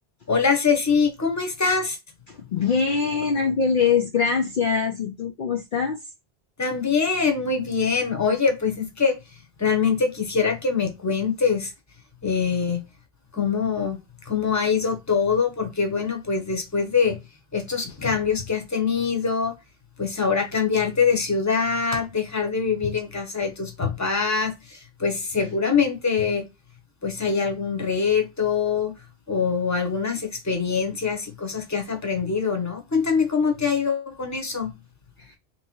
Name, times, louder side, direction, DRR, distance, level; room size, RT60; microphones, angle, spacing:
voice 1, 0.3-2.0 6.6-11.7 12.2-12.8 13.3-14.0 14.2-17.2 17.5-19.6 20.0-26.5 27.0-29.0 29.3-34.7, left 5 dB, 15° left, 0.9 m, -24 dB
voice 2, 2.3-6.0 35.3-35.4, left 5 dB, 55° left, 0.7 m, -23 dB
3.3 x 3.0 x 4.4 m
omnidirectional pair, 1.1 m